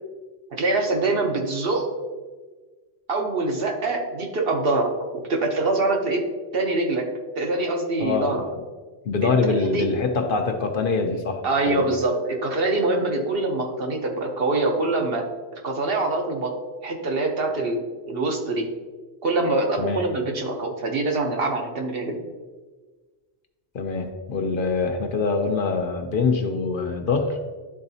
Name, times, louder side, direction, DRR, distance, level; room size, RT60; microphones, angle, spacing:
voice 1, 0.5-1.9 3.1-4.9 5.3-6.2 6.5-7.1 7.4-8.4 9.6-9.8 11.4-15.3 15.5-16.6 16.8-17.8 18.1-18.7 19.2-22.2, right 2 dB, 60° right, 1 dB, 1.1 m, -24 dB
voice 2, 8.0-8.5 9.0-11.8 19.8-20.0 23.7-27.4, left 4 dB, 55° left, 4 dB, 0.8 m, -24 dB
11.0 x 3.9 x 2.7 m, 1.3 s
omnidirectional pair, 1.1 m